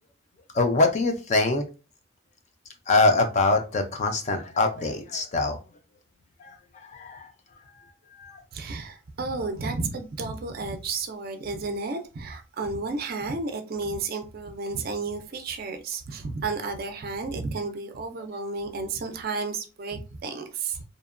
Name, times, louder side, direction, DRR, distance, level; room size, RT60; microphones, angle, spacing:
voice 1, 0.5-1.6 2.9-5.6 6.4-7.3 8.2-8.4, left 3 dB, 35° left, 0.4 m, -24 dB
voice 2, 8.5-20.8, right 3 dB, 45° right, 0.4 m, -32 dB
2.8 x 2.1 x 2.4 m
head